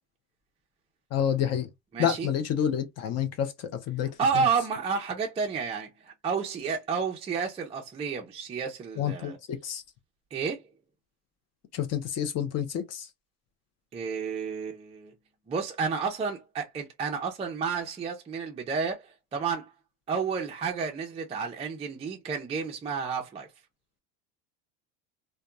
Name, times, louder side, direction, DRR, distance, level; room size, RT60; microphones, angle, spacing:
voice 1, 1.1-1.7 2.0-4.4 9.0-9.8 11.7-13.1, left 9 dB, 35° left, 0.6 m, -29 dB
voice 2, 1.9-2.3 4.2-9.4 10.3-10.6 13.9-15.1 15.5-19.7 20.1-23.5, right 5 dB, 15° right, 0.5 m, -31 dB
2.7 x 2.2 x 2.2 m
supercardioid pair, 110°, 43 cm